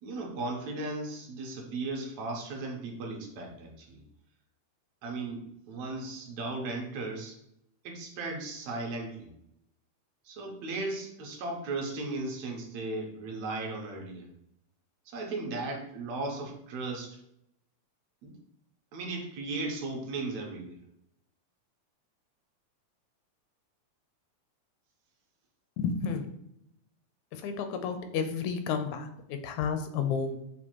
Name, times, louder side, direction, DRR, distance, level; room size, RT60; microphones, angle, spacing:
voice 1, 0.0-4.0 5.0-7.4 7.8-9.3 10.3-14.3 15.1-17.2 18.2-18.3 18.9-20.8, right 2 dB, 75° right, 1 dB, 1.9 m, -36 dB
voice 2, 25.8-26.3 27.3-30.4, left 6 dB, 80° left, 8 dB, 1.8 m, -31 dB
6.7 x 2.4 x 2.9 m, 0.78 s
omnidirectional pair, 3.4 m